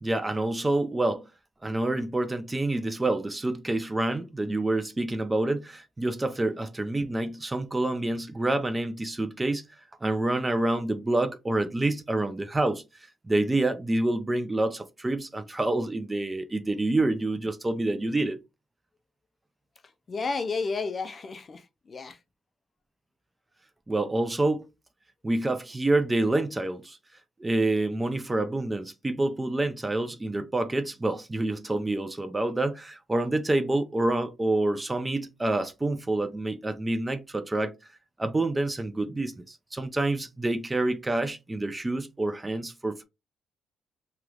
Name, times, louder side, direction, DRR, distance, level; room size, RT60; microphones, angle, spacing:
voice 1, 0.0-1.2 1.6-9.7 10.0-12.8 13.3-18.4 23.9-24.6 25.2-27.0 27.4-37.7 38.2-43.0, right 2 dB, 20° right, 0.5 m, -27 dB
voice 2, 20.1-22.2, left 4 dB, 40° left, 0.5 m, -32 dB
3.0 x 2.9 x 2.4 m
cardioid pair, 90°, 0 cm